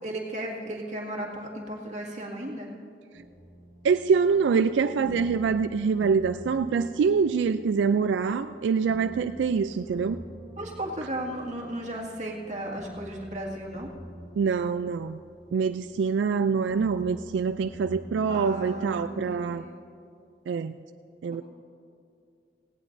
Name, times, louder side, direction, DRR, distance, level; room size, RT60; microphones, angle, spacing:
voice 1, 0.0-2.7 10.6-13.9 18.3-19.8, right 1 dB, 40° right, -2 dB, 2.0 m, -35 dB
sound 1, 3.1-19.5, right 1 dB, 15° left, 4.0 m, -46 dB
voice 2, 3.8-10.2 14.4-15.2 15.5-19.6 20.5-20.8 21.2-21.4, right 5 dB, 85° right, 10 dB, 0.3 m, -25 dB
17.5 x 17.0 x 2.6 m, 2.5 s
head